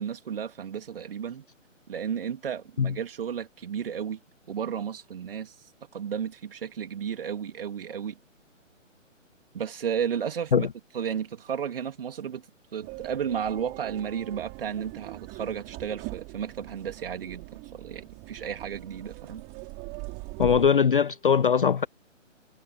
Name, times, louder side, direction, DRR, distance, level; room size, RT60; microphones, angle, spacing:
voice 1, 0.0-1.4 1.9-4.2 4.5-5.6 5.9-8.2 9.5-10.7 10.9-12.4 12.7-17.5 17.7-19.4, right 8 dB, 45° right, 3.4 m, -33 dB
sound 1, 12.8-20.7, right 31 dB, 20° right, 6.2 m, -41 dB
voice 2, 20.4-21.9, left 7 dB, 45° left, 0.5 m, -21 dB
figure-of-eight pair, 140°, 39 cm